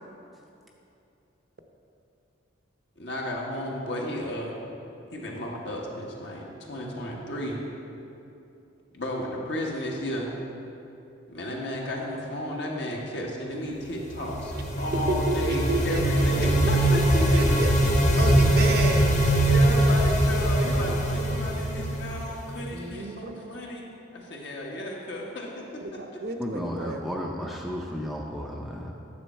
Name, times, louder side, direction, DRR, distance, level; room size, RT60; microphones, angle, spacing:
voice 1, 3.0-4.5 5.1-7.6 8.9-10.3 11.3-17.0 19.3-23.9 24.1-26.2, equal, 60° left, -2 dB, 1.4 m, -33 dB
sound 1, 14.0-22.7, right 1 dB, 40° left, 1.0 m, -22 dB
voice 2, 15.1-16.5 17.1-17.9 18.2-19.1 22.7-23.3 25.8-27.0, right 2 dB, 55° right, 4 dB, 0.7 m, -31 dB
voice 3, 26.4-28.9, equal, ahead, -1 dB, 0.5 m, -33 dB
9.8 x 7.2 x 4.4 m, 2.8 s
head